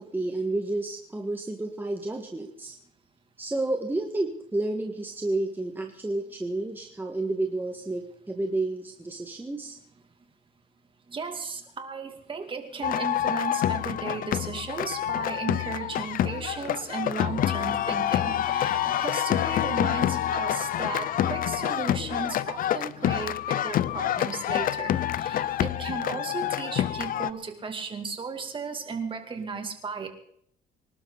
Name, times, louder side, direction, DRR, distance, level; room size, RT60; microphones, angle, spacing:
voice 1, 0.0-2.7 3.4-9.8, right 2 dB, 10° right, 2 dB, 1.7 m, -30 dB
voice 2, 11.1-30.1, right 4 dB, 30° right, 5 dB, 2.7 m, -35 dB
sound 1, 12.8-27.3, left 11 dB, 55° left, 0.7 m, -27 dB
25.0 x 12.0 x 4.1 m, 0.67 s
cardioid pair, 110°, 17 cm